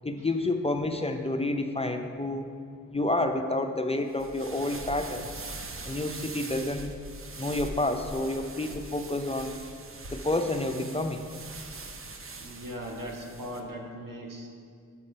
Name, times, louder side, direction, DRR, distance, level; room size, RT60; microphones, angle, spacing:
voice 1, 0.0-2.5 2.9-5.5 5.8-6.9 7.4-9.6 10.1-11.2, left 2 dB, 20° left, 5 dB, 0.5 m, -29 dB
sound 1, 4.1-13.6, right 2 dB, 40° right, 0.8 m, -42 dB
voice 2, 12.4-14.5, equal, 70° right, 0 dB, 1.4 m, -39 dB
7.4 x 4.9 x 5.4 m, 2.3 s
cardioid pair, 45°, 34 cm